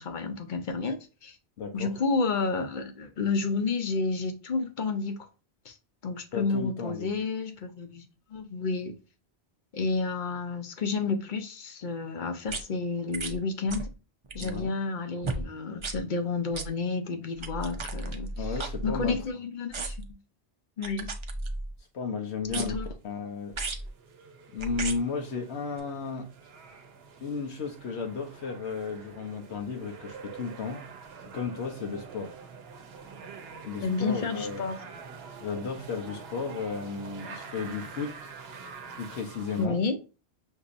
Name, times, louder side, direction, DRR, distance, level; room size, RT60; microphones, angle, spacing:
voice 1, 0.0-1.4 1.7-5.2 5.7-5.8 6.0-8.0 8.3-8.9 9.7-13.9 14.3-18.5 18.8-20.0 20.8-21.1 22.5-22.9 33.8-34.8 39.6-40.0, left 4 dB, 50° left, 0.8 m, -30 dB
voice 2, 1.6-1.9 6.3-7.1 14.4-14.7 18.4-19.2 21.9-23.6 24.5-26.3 27.2-30.9 31.2-32.3 33.6-34.7 35.4-38.3 38.9-39.8, left 5 dB, 85° left, 1.0 m, -34 dB
sound 1, 12.5-12.6 13.1-13.4 13.7-13.9 14.2-14.6 15.2-15.4 15.8-16.0 16.5-16.7 17.4-19.3 19.7-20.1 20.8-21.8 22.5-22.9 23.5-23.9 24.6-25.0 25.8-25.9, right 2 dB, 40° right, 0.4 m, -34 dB
sound 2, 23.6-39.7, right 5 dB, 70° right, 0.9 m, -46 dB
6.3 x 2.7 x 2.5 m
omnidirectional pair, 1.1 m